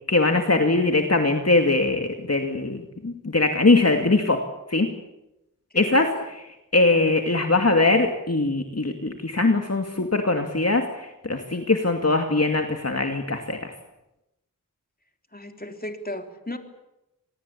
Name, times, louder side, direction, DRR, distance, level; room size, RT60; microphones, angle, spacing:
voice 1, 0.1-4.4 4.7-4.9 5.8-6.5 6.7-13.7, left 2 dB, 50° left, 4 dB, 2.4 m, -21 dB
voice 2, 5.7-6.2 15.3-16.6, left 1 dB, 25° left, 5 dB, 3.6 m, -36 dB
26.5 x 20.0 x 8.6 m, 0.90 s
wide cardioid pair, 45°, 33 cm